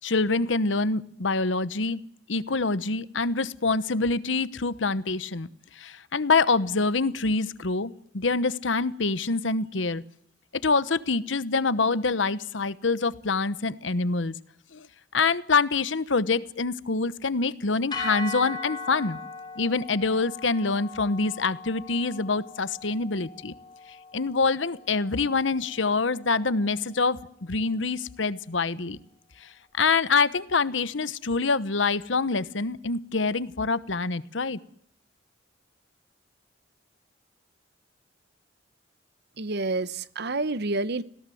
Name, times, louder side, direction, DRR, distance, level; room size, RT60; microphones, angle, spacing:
voice 1, 0.0-2.0 2.3-5.5 5.7-10.0 10.6-14.3 14.7-14.9 15.1-19.2 19.6-23.5 24.1-29.0 29.4-29.5 29.8-34.6, left 4 dB, 70° left, 16 dB, 1.0 m, -26 dB
sound 1, 17.9-26.2, left 3 dB, 25° left, 5.7 m, -39 dB
voice 2, 39.4-41.0, right 2 dB, 60° right, 16 dB, 0.9 m, -28 dB
26.5 x 17.5 x 7.8 m, 0.67 s
head